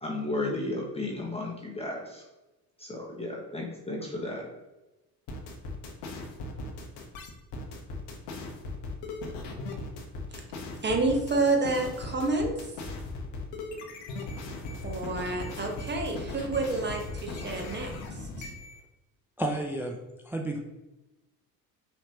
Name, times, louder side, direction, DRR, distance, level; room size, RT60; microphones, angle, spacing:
voice 1, 0.0-2.2 2.8-4.5, left 2 dB, 10° left, -2 dB, 1.1 m, -34 dB
sound 1, 5.3-18.8, left 2 dB, 60° left, 1.1 m, -38 dB
voice 2, 10.8-12.9 14.8-18.5, right 3 dB, 20° right, 2 dB, 1.1 m, -29 dB
voice 3, 19.4-20.0 20.3-20.6, right 1 dB, 5° right, 2 dB, 0.4 m, -31 dB
5.6 x 3.2 x 2.9 m, 1.0 s
hypercardioid pair, 60°, 49 cm